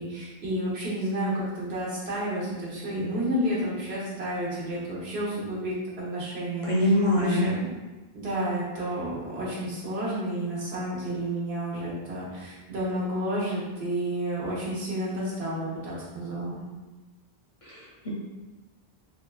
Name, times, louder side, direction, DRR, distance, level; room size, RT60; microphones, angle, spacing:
voice 1, 0.0-6.7 7.1-7.7 8.1-16.6, right 1 dB, 85° right, -7 dB, 1.2 m, -31 dB
voice 2, 6.6-7.4 17.6-18.1, left 1 dB, 45° left, -6 dB, 0.5 m, -24 dB
3.5 x 2.2 x 2.3 m, 1.2 s
omnidirectional pair, 1.0 m